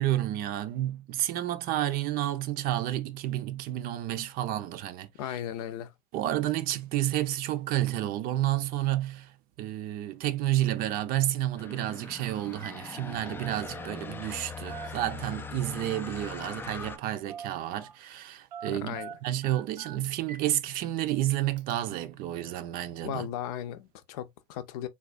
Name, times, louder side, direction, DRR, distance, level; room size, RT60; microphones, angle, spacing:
voice 1, 0.0-5.4 6.1-23.3, right 13 dB, 45° right, 0.5 m, -30 dB
voice 2, 5.2-5.9 18.7-19.1 23.0-24.9, left 11 dB, 65° left, 0.6 m, -36 dB
sound 1, 11.6-17.0, left 4 dB, 10° left, 0.3 m, -41 dB
Telephone, 12.0-12.2 12.5-12.8 13.1-14.4 14.7-15.6 16.8-17.0 17.3-18.0 18.5-20.5 20.9-21.0 21.6-21.7, right 8 dB, 85° right, 0.6 m, -45 dB
3.7 x 2.3 x 2.5 m
hypercardioid pair, 95°, 21 cm